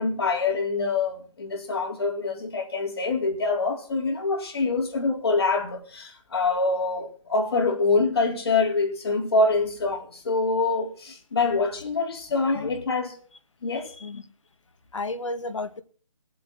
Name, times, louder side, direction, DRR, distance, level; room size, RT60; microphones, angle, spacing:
voice 1, 0.0-13.1 13.6-13.9, left 3 dB, 50° left, 3.8 m, -25 dB
voice 2, 12.5-12.8 13.7-14.2 14.9-15.8, left 2 dB, 70° left, 2.0 m, -33 dB
20.5 x 7.7 x 6.0 m
hypercardioid pair, 165°, 17 cm